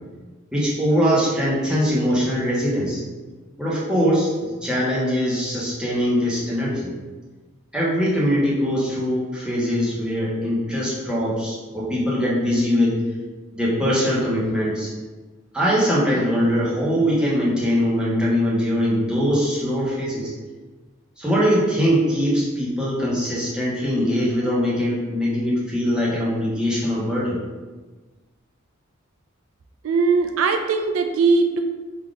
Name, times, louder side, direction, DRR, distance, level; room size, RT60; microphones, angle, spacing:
voice 1, 0.5-3.0 3.6-6.9 7.7-13.0 13.5-14.9 15.5-20.3 21.2-27.4, equal, 5° right, -7 dB, 1.1 m, -22 dB
voice 2, 29.8-31.6, right 4 dB, 80° right, 6 dB, 0.4 m, -20 dB
4.0 x 2.8 x 4.8 m, 1.3 s
head